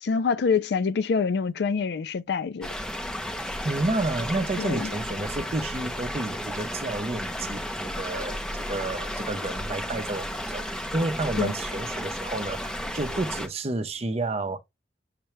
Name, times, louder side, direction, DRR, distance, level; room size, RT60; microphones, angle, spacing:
voice 1, 0.0-2.7 4.6-4.9 11.4-11.5, left 5 dB, 65° left, 0.4 m, -26 dB
sound 1, 2.6-13.5, equal, 5° left, 0.6 m, -33 dB
voice 2, 3.6-14.6, right 2 dB, 35° right, 0.6 m, -30 dB
6.6 x 2.2 x 3.0 m
head